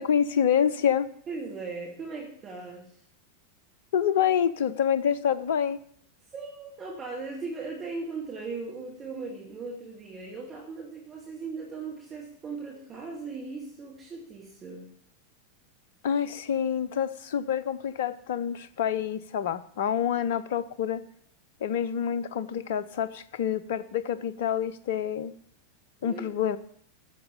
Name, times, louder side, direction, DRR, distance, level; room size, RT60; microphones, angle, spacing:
voice 1, 0.0-1.1 3.9-5.8 16.0-21.0 21.6-25.3 26.0-26.6, left 8 dB, 55° left, 15 dB, 0.7 m, -27 dB
voice 2, 1.3-3.0 6.3-14.9 26.0-26.6, right 4 dB, 25° right, -2 dB, 2.3 m, -38 dB
10.5 x 7.0 x 8.4 m, 0.64 s
figure-of-eight pair, 90°, 0 cm